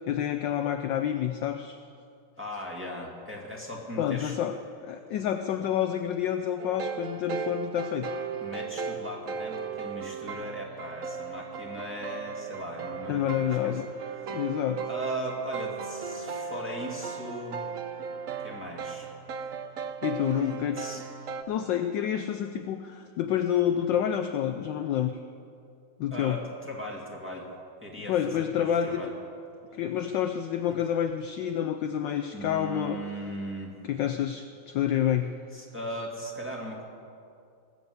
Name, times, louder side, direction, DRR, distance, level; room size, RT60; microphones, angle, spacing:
voice 1, 0.1-1.8 4.0-8.1 13.1-13.9 14.3-14.9 20.0-20.8 21.5-25.1 26.0-26.4 28.0-29.0 29.7-33.0 33.8-35.4, left 10 dB, 70° left, 8 dB, 1.1 m, -28 dB
voice 2, 2.4-4.4 8.4-13.8 14.2-14.4 14.8-17.6 18.4-19.1 20.2-21.0 26.1-27.5 27.8-29.1 30.7-30.8 32.3-33.7 35.5-36.8, equal, 5° right, -2 dB, 2.0 m, -38 dB
sound 1, 6.6-21.4, right 6 dB, 70° right, 0.8 m, -36 dB
19.5 x 8.0 x 7.8 m, 2.4 s
omnidirectional pair, 2.4 m